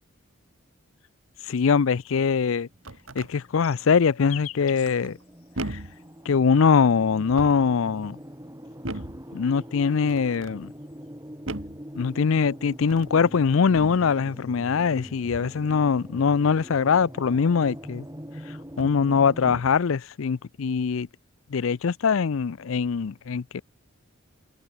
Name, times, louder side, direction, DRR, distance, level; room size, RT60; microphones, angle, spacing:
voice 1, 1.4-2.7 3.2-5.2 5.7-5.8 6.3-8.2 9.3-10.7 12.0-18.1 18.8-21.1 21.5-23.6, left 6 dB, 70° left, 0.5 m, -22 dB
sound 1, 2.7-19.6, equal, 15° right, 4.5 m, -43 dB
sound 2, 2.7-3.3 4.8-5.2 5.5-6.0 7.2-7.8 8.8-9.3 10.1-10.6 11.5-11.8 12.8-13.2 13.7-14.1 15.3-15.6 17.7-17.8 18.7-19.0 19.4-19.8, right 2 dB, 70° right, 2.5 m, -38 dB
sound 3, 2.9-6.3 7.2-8.6 9.4-11.3 12.7-14.9 15.3-15.8 16.1-17.2 17.5-18.1, left 14 dB, 90° left, 1.9 m, -49 dB
head